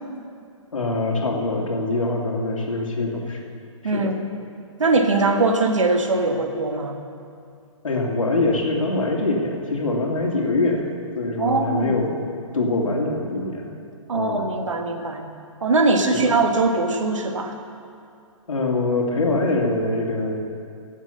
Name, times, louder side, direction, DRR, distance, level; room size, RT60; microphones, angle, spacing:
voice 1, 0.7-3.4 3.9-4.0 7.8-10.8 11.2-12.2 12.5-13.7 14.1-14.4 16.1-16.4 18.5-20.4, left 2 dB, 75° left, 0 dB, 2.5 m, -23 dB
voice 2, 3.8-4.3 4.8-7.0 11.4-11.9 14.1-15.2 15.6-17.6, right 3 dB, 65° right, 4 dB, 1.6 m, -21 dB
17.5 x 7.4 x 6.8 m, 2.4 s
figure-of-eight pair, 130°, 17 cm